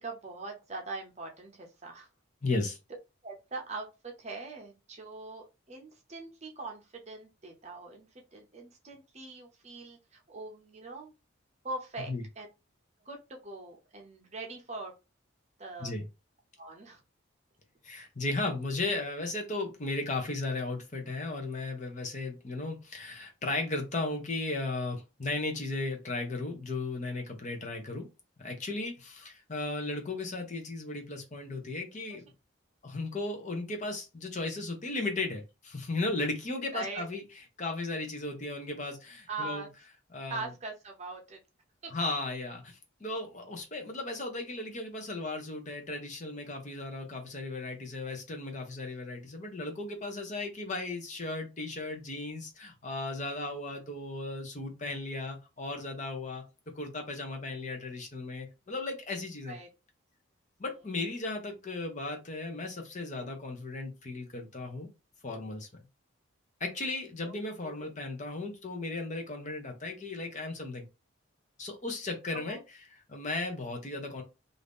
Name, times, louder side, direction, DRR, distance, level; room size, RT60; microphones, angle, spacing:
voice 1, 0.0-2.1 3.2-8.1 8.3-11.1 11.6-12.1 12.4-12.5 13.1-14.9 15.6-15.9 16.6-17.0 17.9-18.1 32.1-32.2 36.7-37.0 39.3-39.7 40.3-41.4 41.8-41.9 59.4-59.7 67.2-67.4 67.6-67.9 72.3-72.6, right 3 dB, 35° right, 2 dB, 0.6 m, -42 dB
voice 2, 2.4-2.8 12.1-12.2 15.8-16.1 17.8-28.1 28.4-32.2 32.8-37.2 37.6-39.6 40.1-40.5 41.9-56.4 56.7-59.6 60.6-64.9 65.2-65.7 66.6-70.9 71.6-72.6 72.9-74.2, left 2 dB, 35° left, 3 dB, 0.7 m, -36 dB
2.7 x 2.5 x 3.5 m, 0.27 s
head